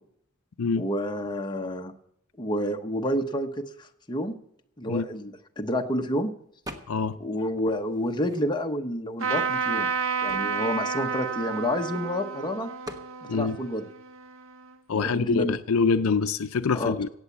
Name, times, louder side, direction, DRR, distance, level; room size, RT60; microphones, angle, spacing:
voice 1, 0.8-1.9 2.4-4.3 4.8-6.3 7.2-9.9 10.2-12.7 13.2-13.9 14.9-15.6 16.7-16.9, left 1 dB, 20° left, 1.0 m, -29 dB
sound 1, 6.7-7.2 7.6-8.8 9.5-9.6 9.8-12.0 12.8-13.1, equal, 15° right, 1.2 m, -44 dB
Trumpet, 9.2-14.7, right 6 dB, 65° right, 0.9 m, -31 dB
voice 2, 14.9-17.1, left 5 dB, 70° left, 0.5 m, -25 dB
17.0 x 7.9 x 7.2 m
head